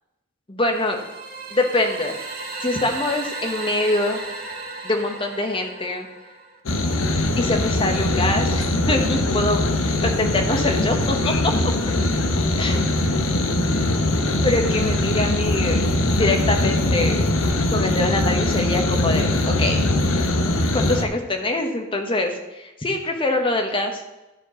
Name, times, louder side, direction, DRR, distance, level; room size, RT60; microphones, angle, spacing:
voice 1, 0.5-1.0 1.5-2.2 2.6-4.2 4.8-6.1 7.4-11.5 12.6-12.9 14.4-15.8 16.1-17.2 17.7-19.8 20.6-24.0, left 2 dB, 25° left, 4 dB, 1.1 m, -24 dB
sound 1, 0.6-6.6, right 3 dB, 45° right, 1.8 m, -35 dB
sound 2, 6.7-21.0, left 1 dB, 80° left, 0.9 m, -21 dB
13.0 x 4.6 x 6.3 m, 1.0 s
head